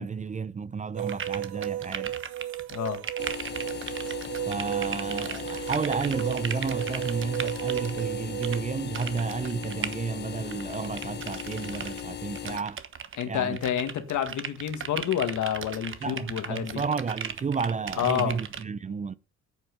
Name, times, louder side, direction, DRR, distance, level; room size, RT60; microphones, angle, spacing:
voice 1, 0.0-2.2 4.5-12.8 13.3-13.6 16.0-19.1, right 5 dB, 25° right, 0.5 m, -32 dB
sound 1, 1.0-8.0 8.4-8.6 8.9-10.0 10.5-12.0 12.3-13.2 13.5-18.6, right 7 dB, 40° right, 1.1 m, -37 dB
sound 2, 1.0-8.6, right 13 dB, 80° right, 0.6 m, -34 dB
sound 3, 3.2-12.6, left 9 dB, 35° left, 0.5 m, -38 dB
voice 2, 13.2-16.8 18.0-18.4, left 9 dB, 75° left, 1.9 m, -29 dB
8.9 x 7.8 x 5.3 m
cardioid pair, 90°, 30 cm